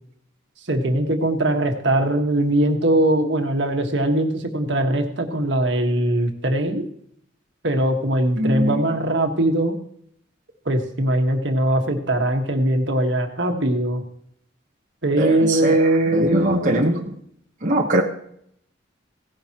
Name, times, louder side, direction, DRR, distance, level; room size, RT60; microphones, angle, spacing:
voice 1, 0.7-6.9 7.6-9.8 10.7-14.0 15.0-17.0, right 1 dB, 65° right, 4 dB, 1.6 m, -21 dB
voice 2, 8.4-8.9 15.2-17.1 17.6-18.0, right 1 dB, 40° right, 0 dB, 1.1 m, -22 dB
17.0 x 10.5 x 3.0 m, 0.68 s
head